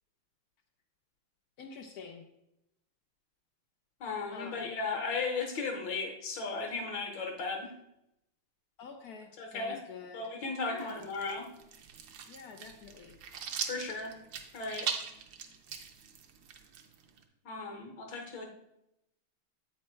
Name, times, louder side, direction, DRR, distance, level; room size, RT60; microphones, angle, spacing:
voice 1, 1.6-2.2 4.3-4.7 8.8-10.2 10.6-11.1 12.3-13.1, left 5 dB, 80° left, 5 dB, 0.8 m, -47 dB
voice 2, 4.0-7.7 9.4-9.8 10.1-11.5 13.7-14.2 14.5-14.9 17.4-18.5, left 4 dB, 65° left, 2 dB, 1.7 m, -36 dB
sound 1, 10.8-17.2, right 7 dB, 70° right, 1.3 m, -41 dB
8.5 x 4.3 x 4.4 m, 0.85 s
omnidirectional pair, 2.3 m